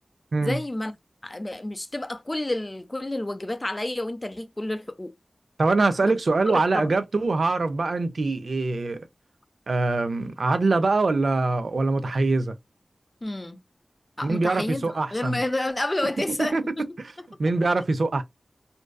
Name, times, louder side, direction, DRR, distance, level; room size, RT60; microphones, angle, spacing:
voice 1, 0.4-0.9 1.2-5.1 6.0-6.1 6.5-6.9 13.2-13.6 14.2-16.8, left 1 dB, 30° left, 0.5 m, -30 dB
voice 2, 5.6-9.1 9.7-12.5 14.2-15.4 16.4-16.6 17.0-17.1 17.4-18.2, right 3 dB, 75° right, 0.4 m, -23 dB
2.6 x 2.3 x 2.2 m
wide cardioid pair, 60°, 0 cm